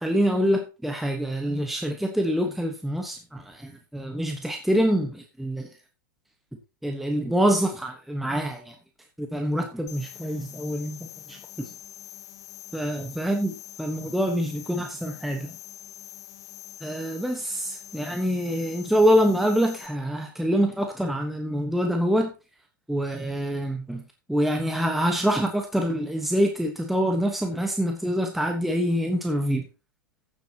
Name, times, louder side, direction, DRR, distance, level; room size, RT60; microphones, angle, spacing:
voice 1, 0.0-5.7 6.8-8.7 9.2-11.0 11.3-11.7 12.7-13.5 13.8-15.5 16.8-22.3 22.9-24.0 24.3-29.6, equal, ahead, 3 dB, 1.1 m, -25 dB
sound 1, 9.9-19.9, left 12 dB, 30° left, 1.2 m, -44 dB
14.5 x 7.5 x 2.8 m, 0.30 s
hypercardioid pair, 125°, 11 cm